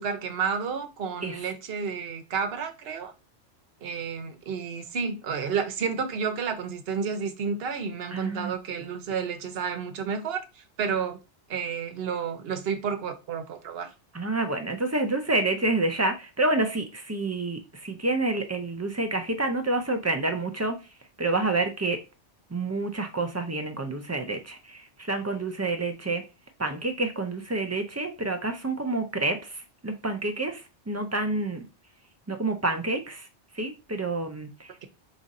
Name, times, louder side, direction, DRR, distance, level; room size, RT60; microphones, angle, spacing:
voice 1, 0.0-3.1 3.8-11.2 11.5-13.9, right 6 dB, 60° right, 1.0 m, -31 dB
voice 2, 8.1-8.5 14.1-20.8 21.2-22.0 22.5-26.2 26.6-31.7 32.3-33.3 33.5-34.9, right 2 dB, 25° right, 0.4 m, -28 dB
5.0 x 2.6 x 4.1 m
omnidirectional pair, 1.2 m